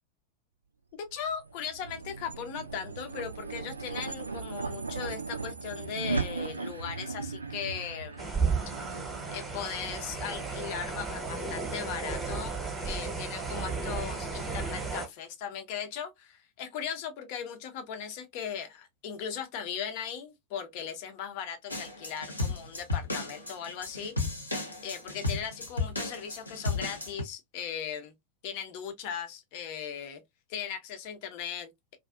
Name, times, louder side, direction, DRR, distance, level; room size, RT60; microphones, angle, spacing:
voice 1, 0.9-8.6 9.3-12.6 12.8-24.4 24.8-28.1 28.4-30.2 30.5-32.0, left 8 dB, 45° left, 0.6 m, -38 dB
sound 1, 1.1-11.6, right 4 dB, 80° right, 0.3 m, -38 dB
sound 2, 8.2-15.1, right 4 dB, 10° right, 0.9 m, -33 dB
sound 3, 21.7-27.2, left 3 dB, 80° left, 0.7 m, -34 dB
2.5 x 2.4 x 2.2 m
figure-of-eight pair, 90°, 0 cm